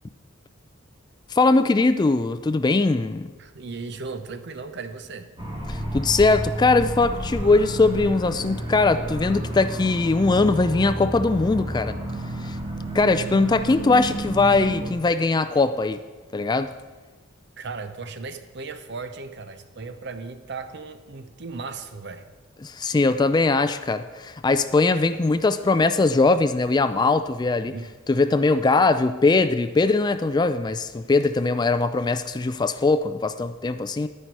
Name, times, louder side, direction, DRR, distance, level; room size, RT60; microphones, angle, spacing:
voice 1, 1.3-3.3 5.7-12.0 12.4-12.6 12.9-16.0 16.3-16.7 22.6-27.7 28.1-34.1, left 3 dB, 20° left, 11 dB, 0.3 m, -21 dB
voice 2, 3.4-5.3 17.6-22.3 27.6-27.9, right 4 dB, 55° right, 10 dB, 0.7 m, -36 dB
sound 1, 5.4-14.9, right 1 dB, 25° right, 1.8 m, -31 dB
11.0 x 9.9 x 4.7 m, 1.3 s
head